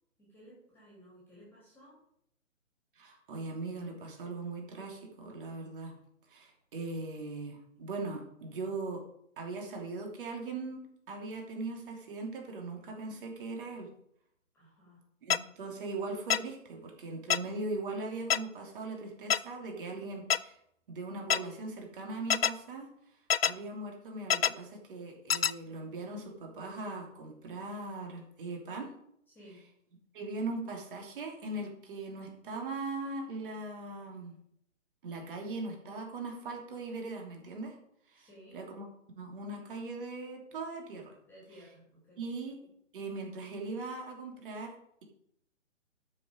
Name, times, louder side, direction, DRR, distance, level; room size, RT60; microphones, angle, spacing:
voice 1, 0.2-2.0 14.5-15.0 29.3-29.7 38.1-38.6 41.3-42.2, equal, 5° left, -6 dB, 3.0 m, -56 dB
voice 2, 2.9-5.9 6.3-9.0 9.4-13.9 15.2-20.6 20.9-22.9 23.4-28.9 30.1-34.4 35.0-37.8 38.1-41.2 42.2-42.6 42.9-44.7, right 3 dB, 40° right, 1 dB, 3.1 m, -40 dB
sound 1, 15.3-15.4 16.3-16.4 17.3-17.4 18.3-18.4 19.3-19.4 20.3-20.4 21.3-21.4 22.3-22.5 23.3-23.5 24.3-24.5 25.3-25.5, left 8 dB, 50° left, 0.4 m, -25 dB
12.0 x 6.5 x 5.2 m, 0.73 s
figure-of-eight pair, 140°, 40 cm